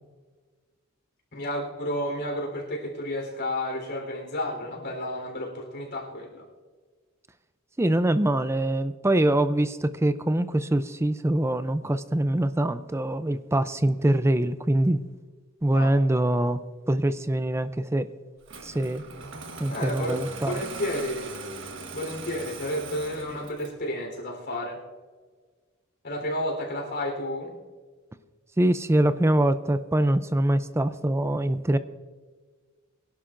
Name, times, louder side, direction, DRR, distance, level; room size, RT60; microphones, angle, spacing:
voice 1, 1.3-6.4 15.7-15.9 19.7-21.3 21.9-24.8 26.0-27.5, left 1 dB, 55° left, 0 dB, 3.8 m, -31 dB
voice 2, 7.8-15.0 15.6-18.1 18.6-19.0 19.6-20.6 28.6-31.8, right 1 dB, 15° right, 12 dB, 0.4 m, -24 dB
Engine starting, 18.5-23.8, right 4 dB, 60° right, 1.4 m, -40 dB
24.5 x 11.5 x 2.5 m, 1.5 s
head